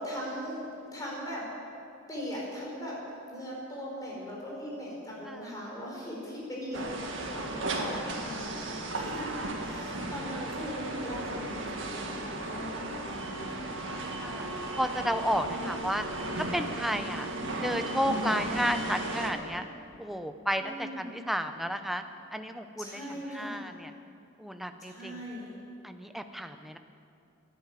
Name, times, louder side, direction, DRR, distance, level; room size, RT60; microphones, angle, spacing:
voice 1, 0.0-1.4 2.1-2.9 3.3-6.8 7.3-8.6 8.9-9.3 9.6-13.6 15.4-15.8 20.5-21.1 22.8-23.6 24.8-25.5, equal, 20° left, -4 dB, 4.9 m, -39 dB
sound 1, 6.7-19.3, right 2 dB, 65° right, 1.9 m, -35 dB
voice 2, 9.2-9.9 10.4-10.7 14.2-14.5 14.8-16.0 16.4-17.3 17.6-19.6 20.0-22.0 22.3-23.0 23.3-23.9 24.4-25.2 25.8-26.8, equal, ahead, 7 dB, 0.6 m, -32 dB
14.0 x 10.5 x 9.1 m, 2.5 s
head